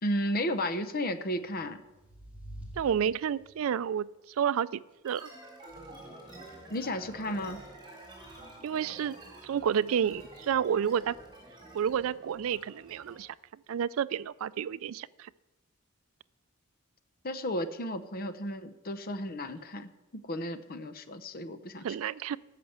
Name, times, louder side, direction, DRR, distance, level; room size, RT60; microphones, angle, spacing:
voice 1, 0.0-1.8 6.7-7.6 17.2-21.9, equal, 45° left, 11 dB, 0.8 m, -33 dB
sound 1, 1.4-3.8, right 1 dB, 5° right, 2.0 m, -48 dB
voice 2, 2.8-4.1 4.4-5.3 8.6-9.2 9.4-11.2 11.7-13.3 13.7-15.3 21.8-22.4, right 8 dB, 75° right, 19 dB, 0.3 m, -30 dB
sound 2, 5.0-13.3, right 2 dB, 25° right, 3.8 m, -49 dB
13.5 x 5.9 x 7.9 m, 1.1 s
head